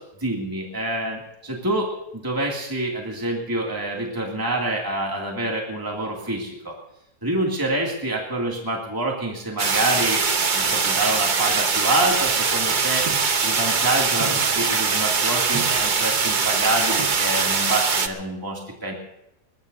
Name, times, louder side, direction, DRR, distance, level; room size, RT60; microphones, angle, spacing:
voice 1, 0.0-6.8 7.2-13.1 13.4-18.9, right 1 dB, 10° right, -1 dB, 2.5 m, -27 dB
sound 1, 9.6-18.1, right 5 dB, 35° right, 0.9 m, -22 dB
sound 2, 13.1-13.4 14.2-14.7 15.5-15.9 17.0-17.2 17.9-18.0, right 4 dB, 70° right, 2.4 m, -33 dB
22.0 x 20.0 x 2.7 m, 0.85 s
omnidirectional pair, 1.7 m